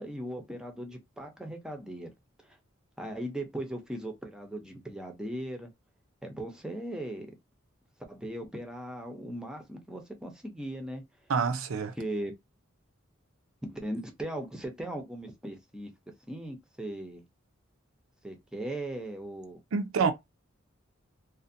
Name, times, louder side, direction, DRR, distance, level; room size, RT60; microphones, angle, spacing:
voice 1, 0.0-2.1 2.4-2.6 3.0-5.7 6.2-7.3 8.1-11.0 12.0-12.3 13.6-15.9 16.3-17.2 18.2-19.6, right 1 dB, 5° right, 0.5 m, -38 dB
voice 2, 11.3-11.9 19.7-20.1, right 5 dB, 85° right, 0.5 m, -27 dB
2.5 x 2.1 x 2.5 m
head